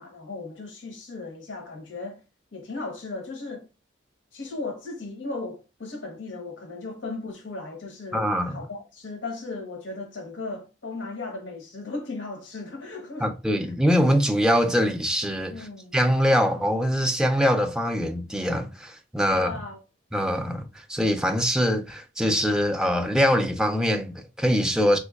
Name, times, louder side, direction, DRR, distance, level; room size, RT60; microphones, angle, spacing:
voice 1, 0.0-2.2 2.5-3.7 4.3-13.3 15.5-15.9 19.3-19.8, left 3 dB, 80° left, 0.8 m, -36 dB
voice 2, 8.1-8.6 13.2-19.5 20.1-25.0, equal, 5° right, 0.4 m, -23 dB
3.5 x 3.0 x 2.3 m
head